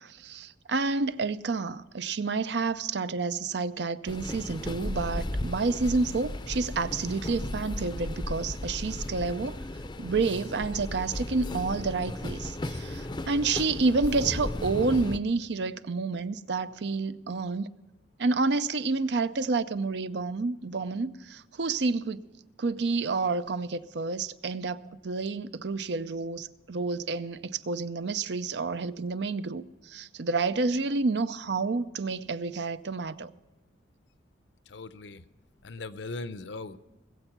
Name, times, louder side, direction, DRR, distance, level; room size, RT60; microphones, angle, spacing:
voice 1, 0.0-9.6 10.0-17.7 18.2-22.2 22.6-33.3, right 3 dB, 65° right, 0.5 m, -29 dB
sound 1, 4.1-15.2, left 1 dB, 25° left, 0.5 m, -35 dB
voice 2, 34.7-35.2 35.6-36.8, left 3 dB, 70° left, 0.7 m, -39 dB
20.5 x 7.9 x 5.9 m
head